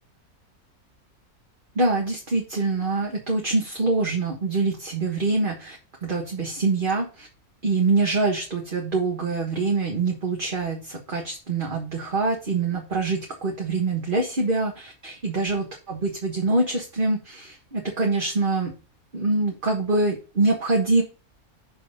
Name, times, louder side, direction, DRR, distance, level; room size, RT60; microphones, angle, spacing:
voice 1, 1.7-7.3 7.6-18.7 19.1-21.0, right 3 dB, 35° right, 0 dB, 1.6 m, -25 dB
6.5 x 6.2 x 5.4 m, 0.34 s
omnidirectional pair, 1.5 m